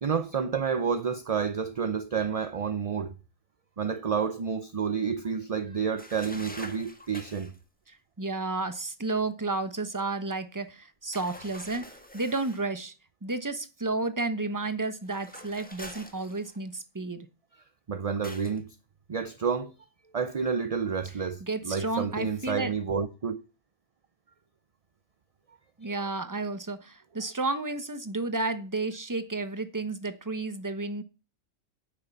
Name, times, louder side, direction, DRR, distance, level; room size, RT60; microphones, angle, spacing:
voice 1, 0.0-3.1 3.8-7.5 17.5-18.8 19.1-19.7 20.1-23.4 25.8-25.9, right 6 dB, 40° right, 0.6 m, -30 dB
sound 1, 6.0-7.6 11.1-12.7 15.0-16.8 18.2-18.6, left 1 dB, 5° left, 1.5 m, -46 dB
voice 2, 8.2-11.8 12.1-12.9 13.2-17.3 21.5-22.7 25.8-31.0, right 3 dB, 15° right, 0.9 m, -32 dB
9.3 x 6.7 x 8.3 m
omnidirectional pair, 1.3 m